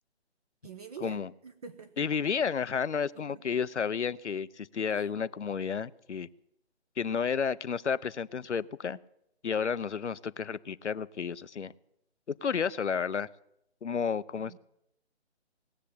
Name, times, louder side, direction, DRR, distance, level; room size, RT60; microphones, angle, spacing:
voice 1, 0.6-2.1 3.1-3.4 4.9-5.1 14.4-14.6, right 6 dB, 35° right, 8 dB, 0.9 m, -47 dB
voice 2, 2.0-6.3 7.0-9.0 9.4-11.7 12.3-13.3 13.8-14.6, left 6 dB, 85° left, 16 dB, 0.7 m, -31 dB
19.0 x 7.4 x 8.4 m, 0.81 s
figure-of-eight pair, 150°, 34 cm